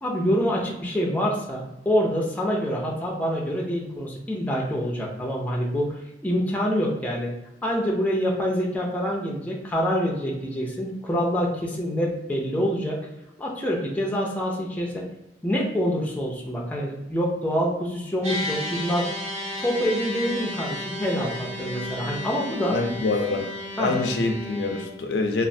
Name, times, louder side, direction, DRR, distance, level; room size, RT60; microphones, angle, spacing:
voice 1, 0.0-7.3 7.6-13.0 13.4-15.1 15.4-19.1 19.6-22.8 23.3-23.4 23.8-24.0, equal, 10° left, -2 dB, 0.4 m, -26 dB
sound 1, 18.2-24.8, left 1 dB, 40° right, 1.3 m, -33 dB
voice 2, 22.7-23.5 23.8-25.5, left 3 dB, 80° left, 4 dB, 0.4 m, -25 dB
3.1 x 2.4 x 2.6 m, 0.92 s
head